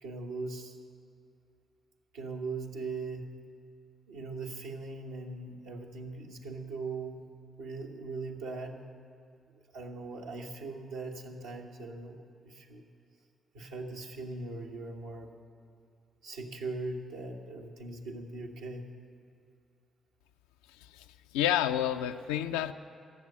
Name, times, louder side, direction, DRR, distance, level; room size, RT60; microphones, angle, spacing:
voice 1, 0.0-0.8 2.1-3.3 4.1-7.3 7.6-8.9 9.7-12.8 13.5-15.3 16.2-18.9, right 3 dB, 85° right, -1 dB, 1.2 m, -40 dB
voice 2, 21.3-22.7, left 11 dB, 85° left, 9 dB, 0.4 m, -29 dB
14.0 x 7.4 x 9.8 m, 2.4 s
hypercardioid pair, 45°, 0 cm